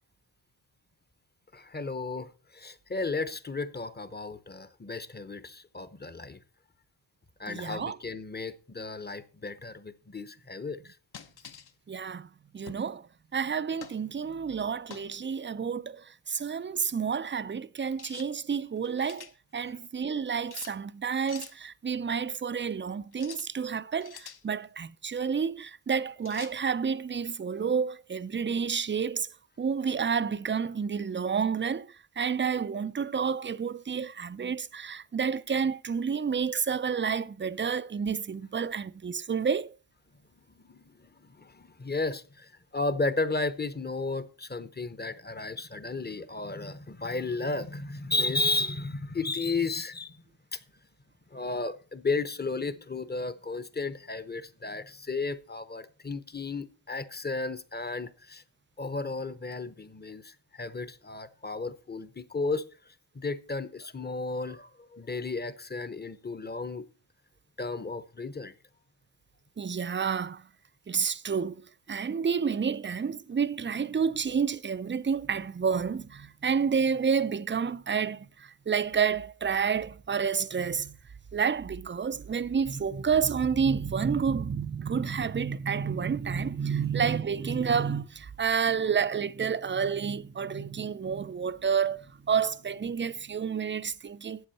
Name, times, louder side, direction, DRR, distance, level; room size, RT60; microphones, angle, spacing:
voice 1, 1.5-6.4 7.4-10.9 40.7-40.9 41.2-50.2 50.5-50.6 51.3-58.4 58.8-62.6 63.1-66.8 67.6-68.5, left 3 dB, 20° left, 0.9 m, -33 dB
voice 2, 7.5-8.0 11.9-12.3 12.5-13.0 13.3-19.3 19.5-29.3 29.6-31.9 32.2-39.7 69.6-70.4 70.9-71.6 71.9-81.0 81.3-94.4, right 6 dB, 25° right, 0.5 m, -29 dB
sound 1, 11.1-11.7 12.7-12.9 13.8-14.0 14.9-15.2 18.0-18.3 18.8-19.3 20.5-20.8 21.3-21.6 23.1-23.5 24.0-24.4 26.3-26.6, left 7 dB, 55° left, 1.1 m, -46 dB
13.0 x 8.6 x 4.2 m
wide cardioid pair, 115°, 45 cm